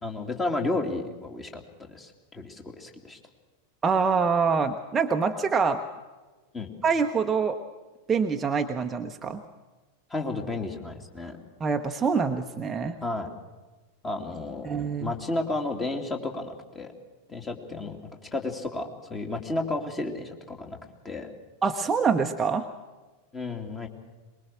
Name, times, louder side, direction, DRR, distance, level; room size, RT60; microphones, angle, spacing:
voice 1, 0.0-3.2 6.5-6.7 10.1-11.4 13.0-13.3 14.0-14.7 15.0-16.9 17.3-20.8 21.0-21.3 23.3-23.9, left 2 dB, 15° left, 3 dB, 2.8 m, -32 dB
voice 2, 3.8-5.8 6.8-7.6 8.1-9.4 11.6-13.0 14.6-15.1 21.6-22.7, right 5 dB, 15° right, 5 dB, 1.0 m, -25 dB
23.5 x 21.0 x 6.4 m, 1.3 s
figure-of-eight pair, 90°, 0 cm